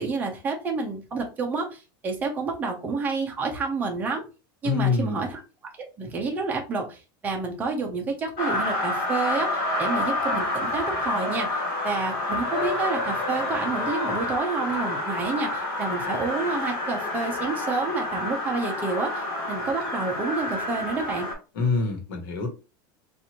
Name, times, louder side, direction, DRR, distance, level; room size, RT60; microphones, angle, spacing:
voice 1, 0.0-4.2 4.6-5.4 6.0-21.3, right 4 dB, 15° right, 1 dB, 0.7 m, -29 dB
voice 2, 4.6-5.2 21.5-22.5, left 4 dB, 80° left, 3 dB, 1.3 m, -25 dB
sound 1, 8.4-21.3, left 2 dB, 45° left, 1.3 m, -28 dB
3.0 x 2.6 x 2.8 m, 0.32 s
supercardioid pair, 170°, 11 cm